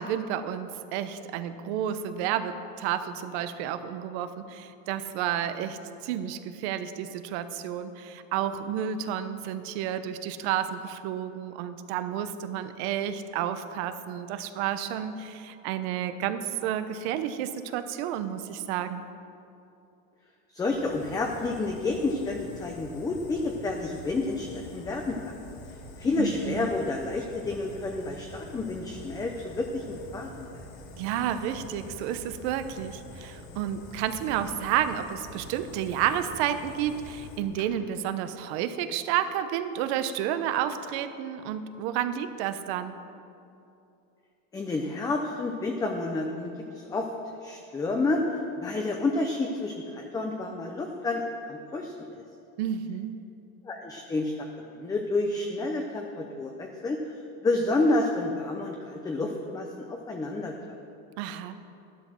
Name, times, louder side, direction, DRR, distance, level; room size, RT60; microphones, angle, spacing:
voice 1, 0.0-19.0 26.2-26.7 30.9-43.0 52.6-53.3 61.2-61.5, right 10 dB, 75° right, 10 dB, 1.0 m, -31 dB
voice 2, 20.5-25.3 26.0-30.6 44.5-47.1 47.4-48.2 48.6-52.1 53.6-54.5 54.7-57.0 57.4-60.5, left 2 dB, 10° left, 2 dB, 0.6 m, -29 dB
Fire, 20.7-37.7, left 1 dB, 60° left, 2.0 m, -46 dB
13.0 x 11.5 x 6.2 m, 2.7 s
cardioid pair, 175°, 33 cm